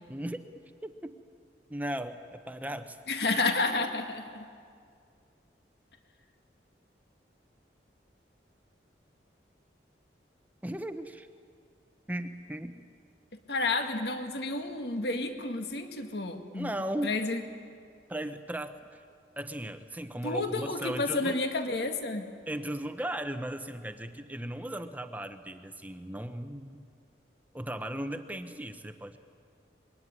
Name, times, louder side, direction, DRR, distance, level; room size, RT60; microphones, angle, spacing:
voice 1, 0.1-0.4 0.8-1.1 1.7-3.0 10.6-11.3 12.1-12.9 16.5-17.2 18.1-19.0 19.4-21.3 22.5-26.9 27.5-29.2, right 1 dB, 10° right, 8 dB, 0.9 m, -37 dB
voice 2, 3.1-4.5 13.5-16.7 17.0-17.4 20.2-22.3, left 3 dB, 65° left, 6 dB, 2.0 m, -30 dB
25.0 x 23.0 x 9.7 m, 2.2 s
head